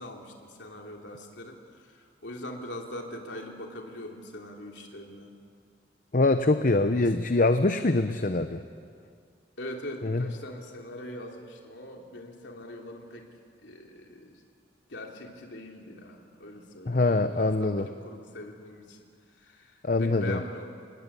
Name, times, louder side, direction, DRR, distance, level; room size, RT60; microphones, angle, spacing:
voice 1, 0.0-5.3 6.8-7.1 9.6-13.3 13.6-14.4 14.9-19.0 19.4-20.7, left 1 dB, 75° left, 1 dB, 3.2 m, -42 dB
voice 2, 6.1-8.6 10.0-10.2 16.9-17.9 19.8-20.4, left 2 dB, 45° left, 9 dB, 0.7 m, -24 dB
27.0 x 19.0 x 8.4 m, 2.1 s
head